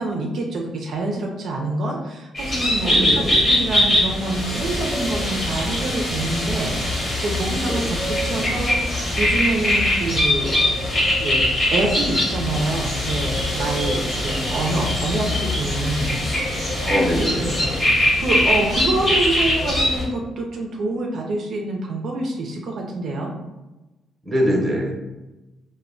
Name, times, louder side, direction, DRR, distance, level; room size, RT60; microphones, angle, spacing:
voice 1, 0.0-10.6 11.1-16.2 16.9-23.3, right 2 dB, 65° right, 0 dB, 0.4 m, -26 dB
sound 1, 2.4-20.0, left 1 dB, 35° left, 1.0 m, -22 dB
voice 2, 2.9-3.5 7.6-7.9 16.8-17.4 17.7-17.8 24.2-24.9, equal, 15° right, -2 dB, 0.8 m, -23 dB
2.1 x 2.1 x 3.7 m, 1.1 s
cardioid pair, 90°, 0 cm